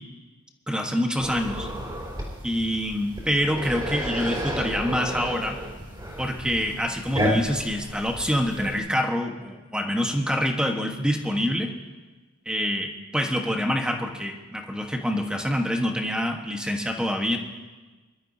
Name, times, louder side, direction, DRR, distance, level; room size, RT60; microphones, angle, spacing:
voice 1, 0.7-1.7 2.4-5.6 6.2-11.7 12.4-17.4, equal, 5° right, 2 dB, 1.2 m, -26 dB
sound 1, 1.2-8.8, equal, 20° right, 3.8 m, -32 dB
24.5 x 12.5 x 2.8 m, 1.3 s
head